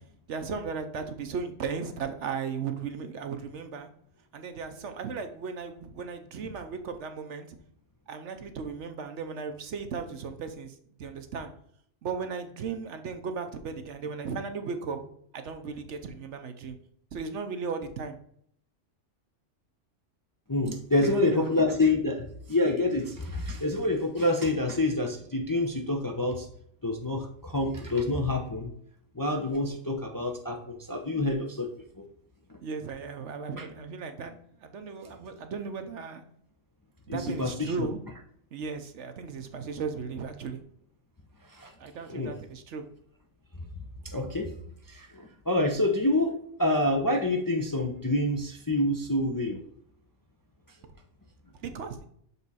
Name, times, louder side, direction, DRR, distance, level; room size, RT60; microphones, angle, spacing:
voice 1, 0.3-3.9 4.3-7.6 8.1-10.7 11.0-11.5 12.0-15.0 15.3-16.8 17.1-18.2 21.0-21.8 32.6-36.2 37.1-38.0 38.5-40.6 41.8-42.8 51.6-52.1, right 5 dB, 70° right, 7 dB, 1.1 m, -36 dB
voice 2, 20.5-26.5 26.8-28.7 29.1-31.7 32.0-32.1 32.5-32.6 33.6-33.7 37.1-37.9 41.5-41.7 42.1-42.3 44.0-44.5 44.9-49.6, left 2 dB, 25° left, 2 dB, 0.5 m, -27 dB
6.9 x 3.5 x 4.1 m, 0.66 s
omnidirectional pair, 1.3 m